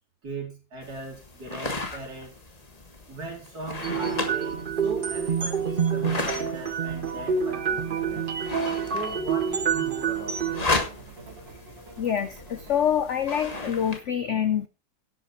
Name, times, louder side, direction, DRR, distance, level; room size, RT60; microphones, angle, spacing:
voice 1, 0.2-2.3 3.1-8.3 8.9-10.5, right 3 dB, 55° right, -1 dB, 4.5 m, -39 dB
sound 1, 0.8-14.0, left 2 dB, 20° left, 1.5 m, -35 dB
sound 2, 3.8-10.6, right 7 dB, 35° right, 0.9 m, -27 dB
sound 3, 3.8-12.9, right 3 dB, 85° right, 3.3 m, -46 dB
voice 2, 12.0-14.7, left 9 dB, 70° left, 13 dB, 0.7 m, -26 dB
11.0 x 9.0 x 4.4 m, 0.33 s
omnidirectional pair, 2.0 m